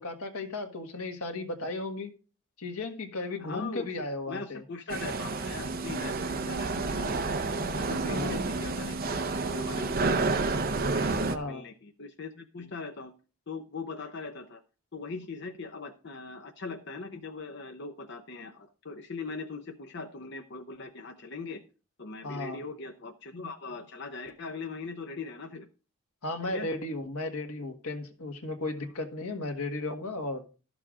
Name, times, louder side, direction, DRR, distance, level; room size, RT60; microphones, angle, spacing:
voice 1, 0.0-2.1 2.6-4.6 8.1-8.4 11.3-11.6 22.2-22.6 26.2-30.4, left 2 dB, 85° left, 4 dB, 1.6 m, -35 dB
voice 2, 3.4-3.9 4.3-10.3 10.5-13.1 13.5-14.6 14.9-21.6 22.0-25.7 26.5-26.7, left 3 dB, 50° left, 5 dB, 0.8 m, -41 dB
sound 1, 4.9-11.4, right 3 dB, 40° right, 0.7 m, -30 dB
13.0 x 6.9 x 3.7 m, 0.35 s
head